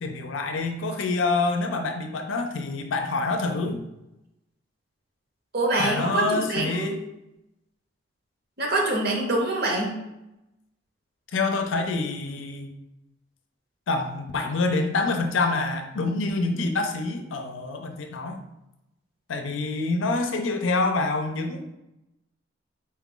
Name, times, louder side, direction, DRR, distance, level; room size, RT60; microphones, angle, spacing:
voice 1, 0.0-3.8 5.8-7.0 11.3-12.7 13.9-18.4 19.3-21.7, left 3 dB, 80° left, 5 dB, 0.5 m, -26 dB
voice 2, 5.5-7.0 8.6-10.0, right 2 dB, 55° right, 0 dB, 0.8 m, -25 dB
4.3 x 2.3 x 3.7 m, 0.90 s
head